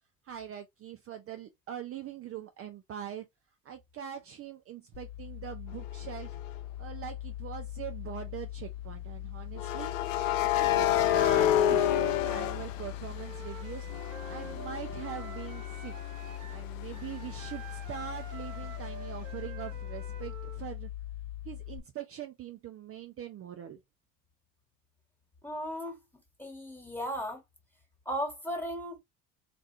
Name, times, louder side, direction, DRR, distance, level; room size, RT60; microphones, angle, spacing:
voice 1, 0.2-3.3 3.6-6.4 6.8-9.9 10.5-13.9 14.3-16.0 16.5-20.9 21.4-23.8, right 10 dB, 35° right, 0.5 m, -42 dB
sound 1, 4.9-21.8, left 13 dB, 45° left, 1.1 m, -41 dB
sound 2, 6.3-6.5 9.6-13.5 13.9-17.4, left 11 dB, 90° left, 0.5 m, -29 dB
Wind instrument woodwind instrument, 13.1-20.6, right 6 dB, 85° right, 0.7 m, -48 dB
voice 2, 25.4-25.9 26.4-27.4 28.0-29.0, equal, 5° left, 1.6 m, -35 dB
3.3 x 2.5 x 2.6 m
hypercardioid pair, 70°, 38 cm